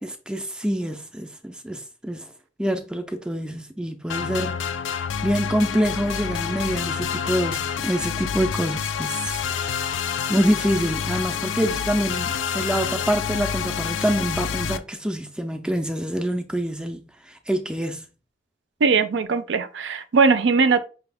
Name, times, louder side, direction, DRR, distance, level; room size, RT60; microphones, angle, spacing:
voice 1, 0.0-2.3 2.6-4.6 5.2-10.0 10.3-18.1, equal, 5° right, 0.3 m, -26 dB
sound 1, 4.1-14.8, left 7 dB, 90° left, 0.4 m, -28 dB
voice 2, 18.8-20.8, right 4 dB, 80° right, 0.5 m, -19 dB
5.6 x 2.3 x 3.4 m
head